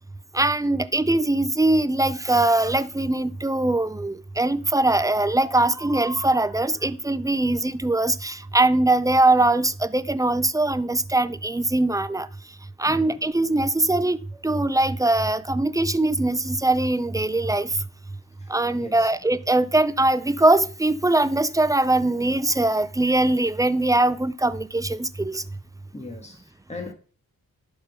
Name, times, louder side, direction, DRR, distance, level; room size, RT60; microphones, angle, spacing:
voice 1, 0.3-12.3 12.8-14.2 14.4-17.7 18.5-25.4, right 2 dB, 10° right, 0.5 m, -21 dB
voice 2, 12.9-13.2 18.7-19.1 25.9-26.9, left 3 dB, 20° left, 1.8 m, -38 dB
11.0 x 3.8 x 5.5 m
cardioid pair, 60°, 36 cm